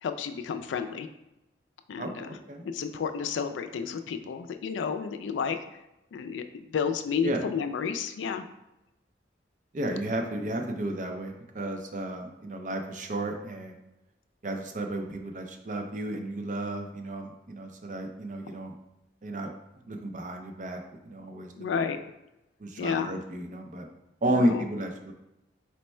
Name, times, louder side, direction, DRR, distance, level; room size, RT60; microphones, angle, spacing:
voice 1, 0.0-1.1 1.9-2.4 2.6-5.6 6.1-8.4 21.5-22.0 22.8-23.1 24.3-24.6, left 6 dB, 85° left, 8 dB, 0.3 m, -31 dB
voice 2, 2.0-2.6 7.2-7.4 9.7-13.8 14.4-18.7 19.2-19.5 19.9-21.9 22.6-23.9 24.2-25.1, right 1 dB, 45° right, 3 dB, 0.5 m, -33 dB
4.3 x 2.1 x 4.3 m, 0.92 s
head